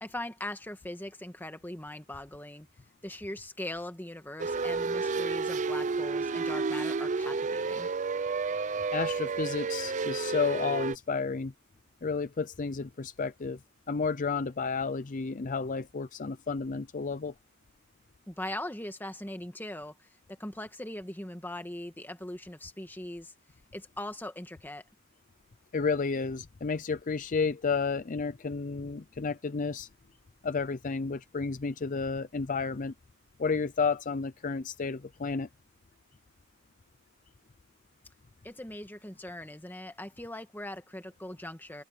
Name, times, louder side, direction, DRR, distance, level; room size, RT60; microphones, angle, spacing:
voice 1, 0.0-2.7 3.0-7.9 18.3-20.1 20.4-23.3 23.7-24.8 38.4-41.8, left 1 dB, 10° left, 1.8 m, -40 dB
sound 1, 4.4-11.0, right 4 dB, 35° right, 0.5 m, -31 dB
voice 2, 8.9-11.5 12.0-13.6 13.9-17.3 25.7-29.9 30.4-32.9 33.4-35.5, left 4 dB, 35° left, 0.5 m, -31 dB
head